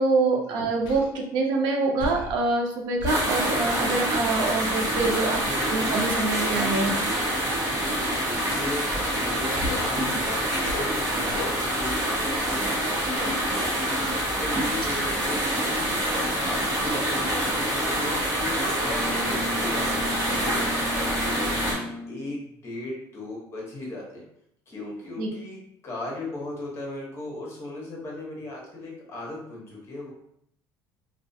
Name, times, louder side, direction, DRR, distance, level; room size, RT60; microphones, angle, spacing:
voice 1, 0.0-5.4 5.7-6.9 25.2-25.3, right 3 dB, 75° right, 2 dB, 0.5 m, -25 dB
Human voice, 0.8-1.1 2.0-2.4 3.0-3.3 5.0-5.2 6.4-6.7 7.9-8.2 9.6-10.0 10.6-11.0 11.3-11.6, left 3 dB, 65° left, 0.5 m, -33 dB
sound 1, 3.1-21.7, right 1 dB, 40° right, 0.9 m, -26 dB
voice 2, 5.4-5.9 8.2-8.9 9.1-13.5 14.4-20.4 20.9-24.2 24.7-30.1, left 2 dB, 35° left, -2 dB, 0.9 m, -37 dB
Wind instrument woodwind instrument, 18.8-22.3, left 1 dB, ahead, 0.3 m, -34 dB
2.3 x 2.2 x 2.6 m, 0.70 s
cardioid pair, 125°, 8 cm